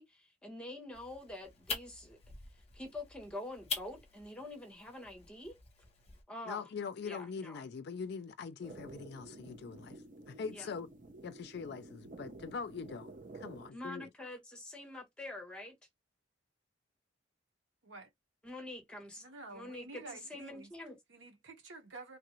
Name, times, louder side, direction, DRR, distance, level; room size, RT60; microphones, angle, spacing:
voice 1, 0.0-2.2 2.7-5.6 6.3-6.7 7.0-7.6 10.5-10.7 13.7-15.8 18.4-19.2 19.5-20.0 20.3-21.0, left 1 dB, 5° left, 1.1 m, -46 dB
sound 1, 0.9-6.2, left 5 dB, 35° left, 0.8 m, -45 dB
voice 2, 6.5-10.9 11.2-14.1, left 5 dB, 60° left, 0.4 m, -43 dB
sound 2, 8.6-13.7, right 2 dB, 45° right, 0.6 m, -51 dB
voice 3, 19.2-20.7 21.1-22.2, right 3 dB, 85° right, 1.2 m, -50 dB
3.2 x 2.4 x 3.0 m
head